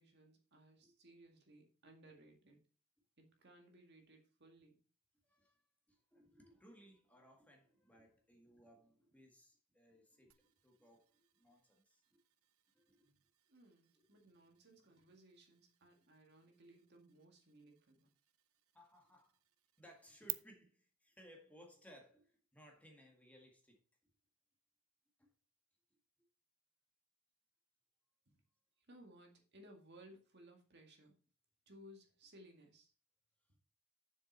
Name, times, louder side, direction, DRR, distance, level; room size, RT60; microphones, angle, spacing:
voice 1, 0.0-2.6 3.2-4.8 13.0-13.2 13.5-18.1 28.3-28.4 28.8-31.2 31.7-32.9, right 1 dB, 50° right, 2.0 m, -62 dB
voice 2, 5.2-5.6 5.9-12.2 12.7-13.1 13.9-14.0 18.7-19.4 19.8-23.8 25.2-25.3, equal, 5° left, 1.8 m, -63 dB
sound 1, 10.3-20.3, right 20 dB, 80° right, 0.6 m, -55 dB
7.6 x 7.1 x 4.2 m
head